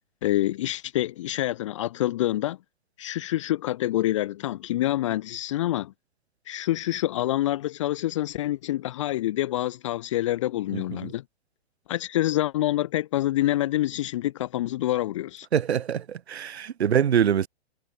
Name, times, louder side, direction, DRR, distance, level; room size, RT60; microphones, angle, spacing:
voice 1, 0.2-2.6 3.0-5.9 6.5-11.2 11.9-15.5, left 14 dB, 30° left, 1.0 m, -26 dB
voice 2, 10.7-11.1 15.5-17.5, right 8 dB, 90° right, 1.5 m, -24 dB
hypercardioid pair, 170°, 32 cm